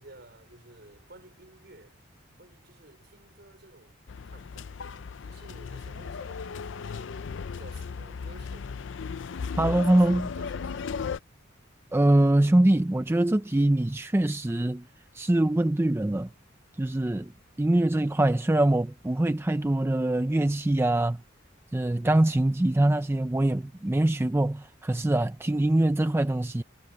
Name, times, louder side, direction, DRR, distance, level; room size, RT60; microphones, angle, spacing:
voice 1, 0.0-2.0 2.4-4.0 4.2-4.8 5.2-8.8 9.5-11.0, right 2 dB, 55° right, 5.0 m, -53 dB
sound 1, 4.1-11.2, left 5 dB, 65° left, 0.4 m, -36 dB
voice 2, 9.6-10.3 11.9-14.9 15.1-16.3 16.8-17.3 17.6-21.2 21.7-26.6, right 1 dB, 10° right, 0.4 m, -23 dB
head